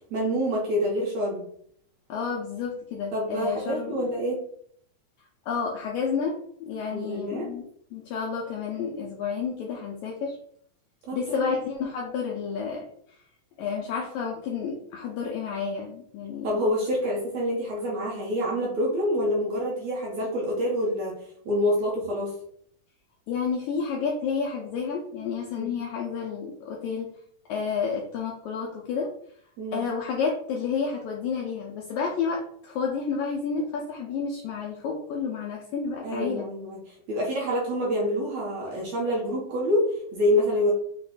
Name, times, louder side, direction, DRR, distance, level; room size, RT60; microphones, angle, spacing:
voice 1, 0.1-1.4 3.1-4.4 6.9-7.5 11.1-11.6 16.4-21.1 21.5-22.3 25.6-25.7 29.6-29.8 36.0-40.7, equal, 70° right, -3 dB, 1.7 m, -27 dB
voice 2, 2.1-4.1 5.5-7.6 7.9-10.4 11.1-12.9 13.6-16.6 23.3-27.1 27.5-29.1 29.7-36.5, left 5 dB, 90° left, -1 dB, 1.7 m, -30 dB
5.9 x 2.2 x 4.0 m, 0.65 s
omnidirectional pair, 4.1 m